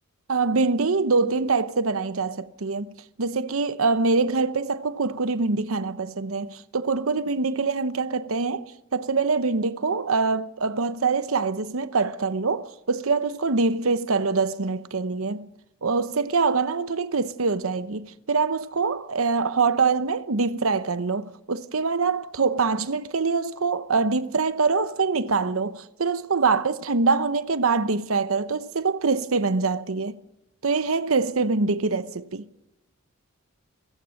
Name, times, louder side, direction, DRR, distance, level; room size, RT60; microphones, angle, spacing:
voice 1, 0.3-15.5 15.8-30.2 30.6-32.5, right 4 dB, 90° right, 0.9 m, -24 dB
29.5 x 16.5 x 6.5 m
head